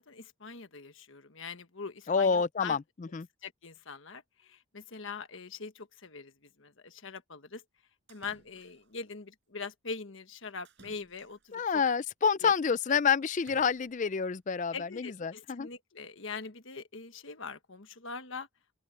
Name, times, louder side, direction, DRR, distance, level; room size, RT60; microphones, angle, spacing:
voice 1, 0.0-2.8 3.4-7.6 8.1-11.6 12.4-12.5 12.9-13.0 14.7-18.5, left 4 dB, 60° left, 1.4 m, -43 dB
voice 2, 2.1-3.3 11.5-15.7, left 6 dB, 35° left, 0.4 m, -28 dB
Splash splatter, 8.1-9.1 10.6-11.7 13.3-14.2, right 2 dB, 50° right, 5.9 m, -60 dB
head